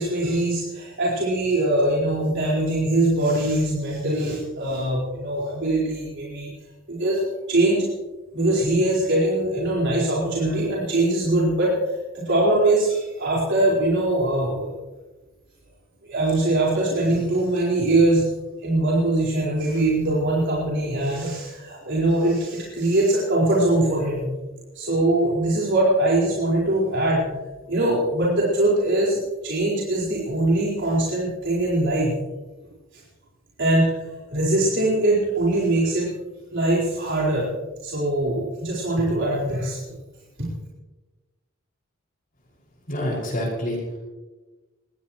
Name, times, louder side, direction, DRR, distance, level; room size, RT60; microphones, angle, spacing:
voice 1, 0.0-6.5 6.9-7.2 7.5-7.9 8.3-14.7 16.0-18.2 18.6-24.2 24.7-27.2 27.7-32.1 32.9-33.0 33.6-36.1 36.5-37.5 37.8-39.8 40.4-40.5, right 1 dB, 60° right, -6 dB, 4.7 m, -22 dB
voice 2, 42.9-44.0, equal, 45° left, -3 dB, 5.9 m, -27 dB
23.0 x 18.0 x 3.1 m, 1.2 s
head